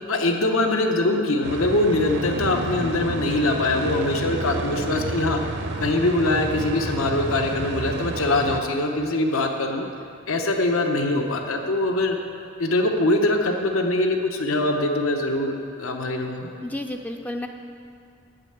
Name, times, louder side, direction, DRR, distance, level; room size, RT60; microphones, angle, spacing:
voice 1, 0.1-5.4 5.8-9.9 10.3-12.2 12.6-16.5, left 2 dB, 85° left, 4 dB, 0.9 m, -23 dB
sound 1, 1.4-8.6, right 2 dB, 55° right, 0.7 m, -30 dB
voice 2, 16.6-17.5, left 1 dB, 10° left, 4 dB, 0.4 m, -31 dB
8.9 x 6.5 x 8.5 m, 2.4 s
head